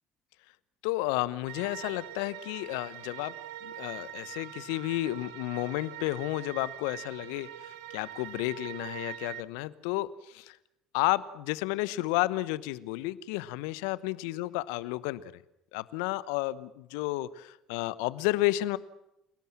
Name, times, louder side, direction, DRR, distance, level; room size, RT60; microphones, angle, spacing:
voice 1, 0.8-3.3 3.6-10.6 10.9-15.4 15.7-18.8, left 18 dB, 75° left, 18 dB, 1.0 m, -32 dB
sound 1, 1.5-9.4, right 13 dB, 75° right, 1.3 m, -43 dB
29.0 x 18.0 x 7.5 m, 0.84 s
hypercardioid pair, 55°, 2 cm